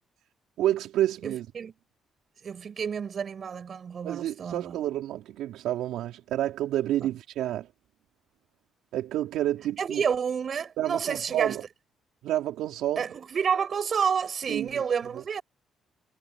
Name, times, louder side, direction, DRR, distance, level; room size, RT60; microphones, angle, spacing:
voice 1, 0.6-1.5 4.0-7.7 8.9-10.0 10.8-11.6 12.2-13.1 14.5-14.8, right 13 dB, 85° right, 4.3 m, -29 dB
voice 2, 1.2-1.7 2.4-4.8 7.0-7.1 9.8-11.6 13.0-15.4, right 7 dB, 50° right, 7.3 m, -29 dB
cardioid pair, 90°, 0 cm